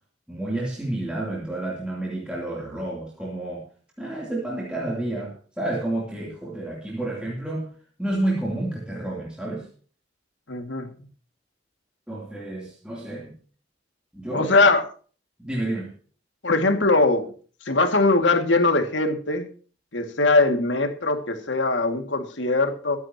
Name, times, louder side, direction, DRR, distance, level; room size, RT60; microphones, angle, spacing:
voice 1, 0.3-3.6 4.0-7.7 8.0-9.7 12.1-13.3 14.1-14.5 15.4-15.9, right 1 dB, 5° right, -5 dB, 3.0 m, -30 dB
voice 2, 10.5-10.9 14.3-14.8 16.4-17.3 17.6-19.5 19.9-23.0, left 3 dB, 85° left, 6 dB, 2.2 m, -21 dB
23.5 x 9.6 x 2.9 m, 0.41 s
head